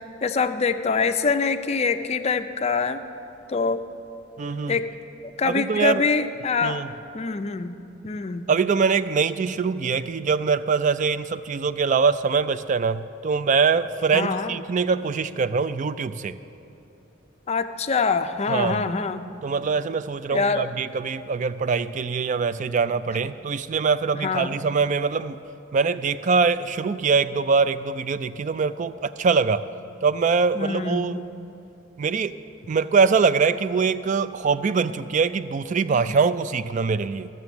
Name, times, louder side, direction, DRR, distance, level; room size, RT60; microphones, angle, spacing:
voice 1, 0.2-3.0 3.5-3.8 4.7-4.9 5.4-6.8 7.1-7.7 8.0-8.5 14.1-14.5 17.5-19.2 20.3-20.7 24.2-24.5 30.5-31.3 35.9-36.1, left 4 dB, 30° left, 10 dB, 0.4 m, -24 dB
voice 2, 4.4-4.8 5.5-6.0 6.6-6.9 8.5-16.4 18.5-18.9 19.4-25.4 25.7-29.6 30.0-31.2 32.0-32.4 32.7-37.3, right 5 dB, 40° right, 14 dB, 0.3 m, -23 dB
14.0 x 6.8 x 7.1 m, 2.7 s
head